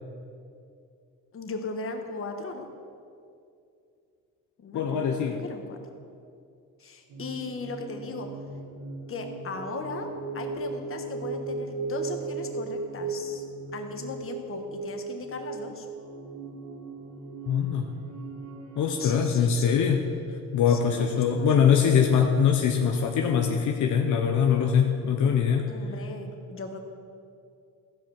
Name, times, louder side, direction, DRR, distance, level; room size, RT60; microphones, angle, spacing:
voice 1, 1.3-2.7 4.6-5.8 6.8-8.3 9.1-13.4 13.7-15.9 19.0-19.8 20.7-22.0 25.7-26.8, left 3 dB, 45° left, 4 dB, 1.5 m, -38 dB
voice 2, 4.7-5.4 17.5-17.9 18.8-20.0 20.5-25.7, left 7 dB, 75° left, 3 dB, 0.8 m, -23 dB
sound 1, 7.1-19.2, right 3 dB, 70° right, 1.8 m, -37 dB
14.5 x 5.3 x 7.2 m, 2.4 s
cardioid pair, 90°, 30 cm